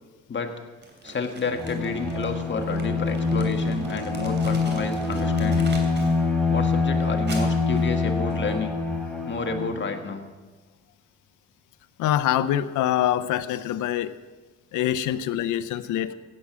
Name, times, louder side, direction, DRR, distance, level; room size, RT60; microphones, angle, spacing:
Crumpling crinkling, 0.8-6.2 6.5-8.5, right 2 dB, 35° right, 3.1 m, -41 dB
voice 1, 1.0-5.8 6.5-8.8 9.3-10.2, left 4 dB, 40° left, 5 dB, 1.7 m, -30 dB
Bowed string instrument, 1.4-9.9, left 3 dB, 5° left, 3.7 m, -25 dB
voice 2, 12.0-14.2 14.7-16.1, left 12 dB, 85° left, 14 dB, 0.7 m, -25 dB
16.5 x 8.6 x 6.2 m, 1.3 s
cardioid pair, 90°, 30 cm